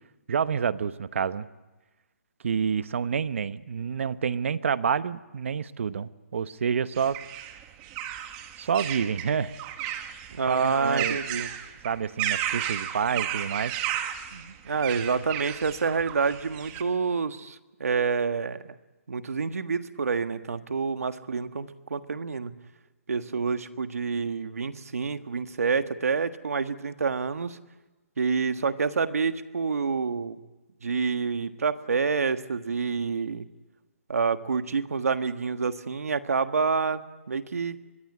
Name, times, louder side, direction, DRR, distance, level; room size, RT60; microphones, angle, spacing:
voice 1, 0.3-1.5 2.4-7.2 8.6-9.5 10.5-11.2 11.8-13.7, right 7 dB, 60° right, 15 dB, 1.0 m, -28 dB
sound 1, 6.9-16.8, right 11 dB, 20° right, 1.4 m, -34 dB
voice 2, 10.3-11.5 14.3-18.7 19.1-22.5 23.1-27.6 28.2-30.4 30.8-33.4 34.1-37.0 37.3-37.8, right 5 dB, 85° right, 10 dB, 1.5 m, -28 dB
23.5 x 22.0 x 9.8 m, 1.1 s
hypercardioid pair, 165°, 8 cm